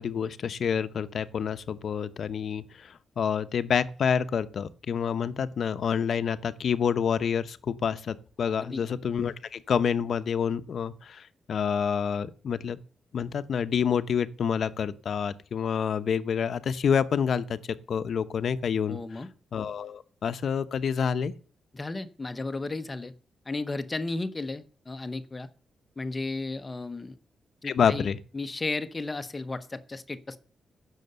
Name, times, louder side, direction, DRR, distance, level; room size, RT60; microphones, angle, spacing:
voice 1, 0.0-12.8 13.1-17.6 17.9-19.0 19.5-21.3 27.6-28.2, left 7 dB, 55° left, 0.9 m, -28 dB
voice 2, 8.5-8.8 18.9-19.3 21.7-23.1 23.5-25.5 26.0-27.1 27.6-28.1 28.3-30.4, left 3 dB, 20° left, 0.8 m, -34 dB
16.5 x 6.7 x 6.6 m
wide cardioid pair, 155°, 0 cm